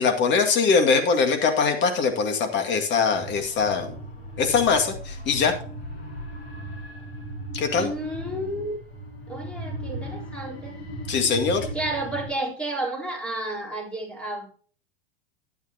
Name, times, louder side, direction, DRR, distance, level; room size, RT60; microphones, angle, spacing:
voice 1, 0.0-3.9 4.4-5.5 7.5-7.9 11.1-11.7, left 5 dB, 35° left, 5 dB, 2.3 m, -22 dB
sound 1, 3.1-12.3, right 1 dB, 90° left, 4.2 m, -37 dB
voice 2, 7.7-8.8 9.3-10.8 11.7-14.5, right 1 dB, 5° left, 0 dB, 4.2 m, -31 dB
12.0 x 9.2 x 2.9 m, 0.42 s
hypercardioid pair, 100°, 31 cm